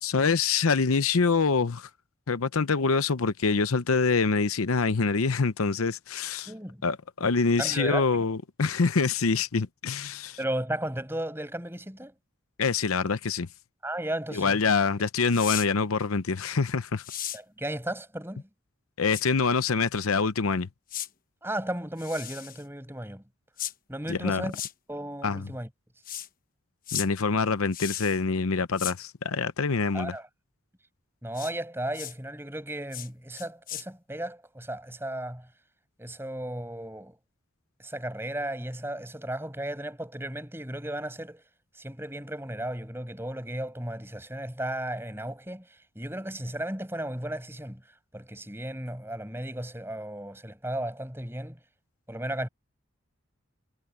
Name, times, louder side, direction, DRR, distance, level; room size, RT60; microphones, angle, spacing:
voice 1, 0.0-1.9 2.3-6.5 6.8-10.4 12.6-13.5 14.3-17.0 19.0-20.7 24.1-24.5 25.2-25.4 26.9-30.1, left 4 dB, 90° left, 0.8 m, -25 dB
voice 2, 6.4-6.8 7.6-8.3 10.4-12.1 13.8-14.6 17.3-18.5 21.4-23.2 23.9-24.6 24.9-25.7 29.9-30.3 31.2-35.5 36.0-37.2 37.8-41.4 41.8-47.8 48.1-51.6 52.1-52.5, right 1 dB, 10° right, 6.8 m, -35 dB
sound 1, 15.3-15.7 17.0-17.4 19.1-19.2 20.9-21.1 22.0-22.6 23.6-23.7 24.5-24.7 26.0-26.3 26.9-27.1 27.7-28.2 28.8-29.0 31.3-31.5 31.9-32.1 32.9-33.1 33.4-33.8, left 11 dB, 40° left, 1.2 m, -35 dB
head